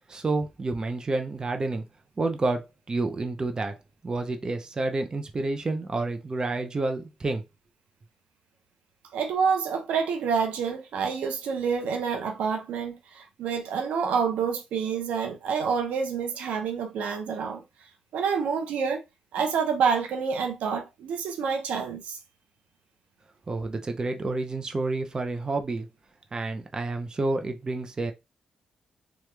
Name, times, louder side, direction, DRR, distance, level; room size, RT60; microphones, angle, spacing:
voice 1, 0.1-1.8 2.2-3.8 4.0-7.4 23.5-25.9 26.3-28.1, right 2 dB, 35° right, 0.6 m, -29 dB
voice 2, 9.1-17.6 18.1-19.0 19.3-22.2, right 6 dB, 90° right, 0.6 m, -28 dB
3.1 x 2.3 x 3.3 m
cardioid pair, 80°, 2 cm